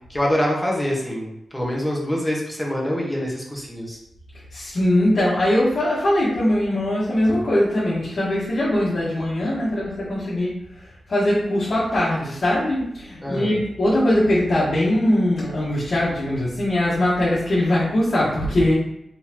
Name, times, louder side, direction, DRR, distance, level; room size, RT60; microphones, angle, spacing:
voice 1, 0.1-4.0 13.2-13.6, equal, 10° left, -3 dB, 1.5 m, -25 dB
voice 2, 4.5-18.7, left 1 dB, 60° left, -10 dB, 1.6 m, -21 dB
4.1 x 4.0 x 3.0 m, 0.83 s
cardioid pair, 65°, 0 cm